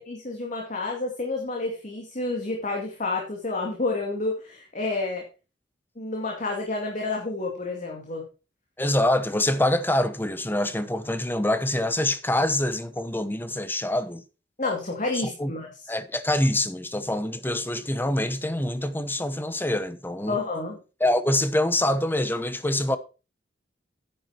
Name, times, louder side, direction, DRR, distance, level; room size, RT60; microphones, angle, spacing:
voice 1, 0.0-5.2 6.0-8.2 14.6-15.7 20.3-20.8, left 3 dB, 45° left, 2.4 m, -29 dB
voice 2, 8.8-14.2 15.4-15.5 15.9-20.4 21.0-23.0, left 1 dB, 10° left, 1.0 m, -25 dB
10.0 x 9.3 x 4.3 m
head